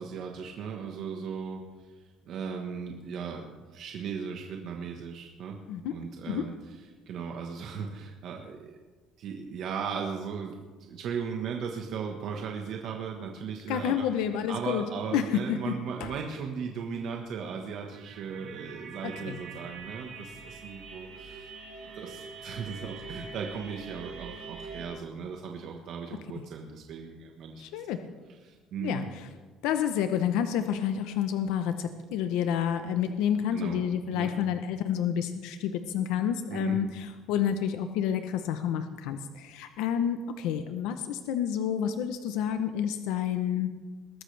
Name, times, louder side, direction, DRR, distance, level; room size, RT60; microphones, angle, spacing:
voice 1, 0.0-1.6 2.2-5.6 5.9-6.5 7.1-8.7 9.2-10.5 10.9-14.2 14.5-21.5 21.9-27.6 28.4-29.1 33.5-34.3 36.5-36.8, right 6 dB, 55° right, 1 dB, 1.3 m, -37 dB
voice 2, 13.7-14.8 15.1-15.7 16.0-16.1 19.0-19.4 26.4-26.5 27.6-28.0 28.8-29.3 29.6-43.7, left 9 dB, 90° left, 8 dB, 0.8 m, -29 dB
sound 1, 17.9-24.9, right 4 dB, 70° right, 3.9 m, -44 dB
21.5 x 13.5 x 3.4 m, 1.3 s
cardioid pair, 155°, 0 cm